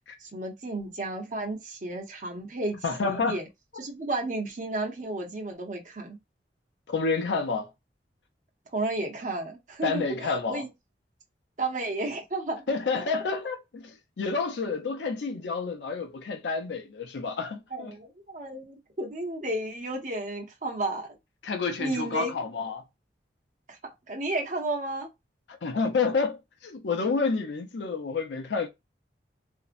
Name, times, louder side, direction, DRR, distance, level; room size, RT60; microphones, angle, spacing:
voice 1, 0.2-2.8 3.0-3.4 3.8-6.2 8.7-10.7 11.6-12.6 13.0-13.1 17.7-21.1 21.8-22.3 23.7-23.8 24.1-25.1, right 2 dB, 45° right, 0.7 m, -32 dB
voice 2, 2.8-3.4 6.9-7.7 9.8-10.6 12.7-17.9 21.4-22.8 25.6-28.7, left 4 dB, 85° left, 0.5 m, -29 dB
2.6 x 2.1 x 2.4 m
head